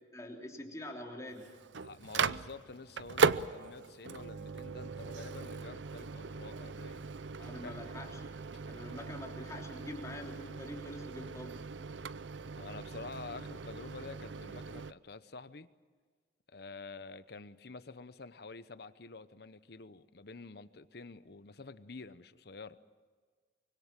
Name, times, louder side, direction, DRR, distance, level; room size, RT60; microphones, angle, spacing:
voice 1, 0.1-1.6 7.3-8.3 8.7-11.6, left 1 dB, 20° left, 0 dB, 3.1 m, -45 dB
Microwave oven, 1.3-14.9, right 4 dB, 90° right, 0.6 m, -38 dB
voice 2, 1.8-7.0 7.6-7.8 12.6-15.7 16.5-22.8, left 3 dB, 60° left, 13 dB, 0.9 m, -48 dB
25.0 x 24.5 x 7.5 m, 1.5 s
head